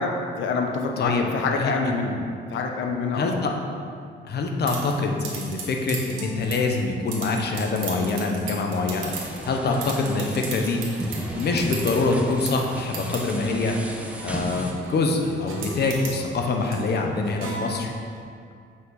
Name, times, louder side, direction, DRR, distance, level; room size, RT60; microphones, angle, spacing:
voice 1, 0.0-2.2 2.5-3.4, left 4 dB, 75° left, 2 dB, 0.9 m, -26 dB
voice 2, 1.0-1.7 3.1-3.5 4.2-9.1 9.4-10.8 11.3-13.7 14.2-17.9, left 3 dB, 55° left, 2 dB, 1.0 m, -25 dB
sound 1, 4.7-18.2, right 3 dB, 85° right, 1.3 m, -37 dB
sound 2, 9.1-14.7, right 1 dB, 5° right, 0.9 m, -36 dB
8.0 x 5.6 x 4.0 m, 2.3 s
cardioid pair, 90°, 20 cm